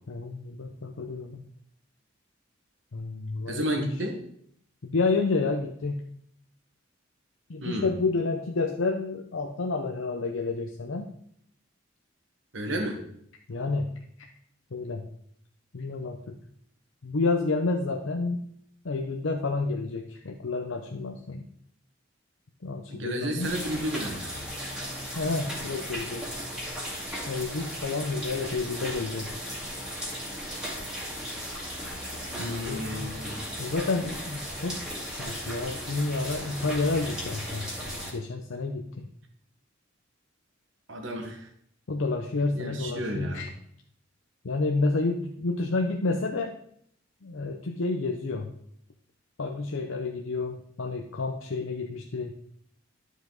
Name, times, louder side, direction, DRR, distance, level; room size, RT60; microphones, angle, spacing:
voice 1, 0.1-1.4 2.9-4.0 4.8-6.1 7.5-11.1 13.5-14.0 14.7-15.0 15.7-16.4 17.0-18.4 18.8-21.5 22.6-23.5 25.1-26.3 27.3-29.3 32.4-33.2 33.6-34.8 35.2-39.0 41.9-43.5 44.4-46.5 47.2-48.5 49.4-52.3, left 3 dB, 85° left, 2 dB, 0.7 m, -30 dB
voice 2, 3.5-4.2 7.6-7.9 12.5-13.0 22.9-24.3 32.3-33.5 40.9-41.5 42.5-43.5, equal, 70° right, 4 dB, 1.5 m, -32 dB
sound 1, 23.4-38.1, equal, 5° right, 2.0 m, -36 dB
11.0 x 5.1 x 3.9 m, 0.67 s
head